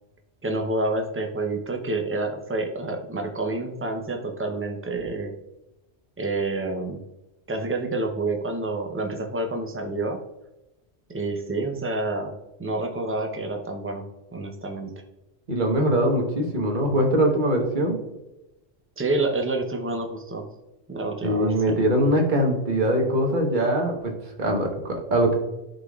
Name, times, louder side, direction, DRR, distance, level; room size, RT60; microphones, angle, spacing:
voice 1, 0.4-5.3 6.2-7.0 7.5-10.2 11.1-12.3 12.6-14.0 14.3-14.9 19.0-20.4 20.9-21.8, right 2 dB, 15° right, 3 dB, 0.6 m, -28 dB
voice 2, 15.5-18.0 21.2-24.1 24.4-25.3, right 1 dB, 45° right, 1 dB, 1.3 m, -22 dB
11.5 x 4.0 x 2.4 m, 0.96 s
omnidirectional pair, 1.1 m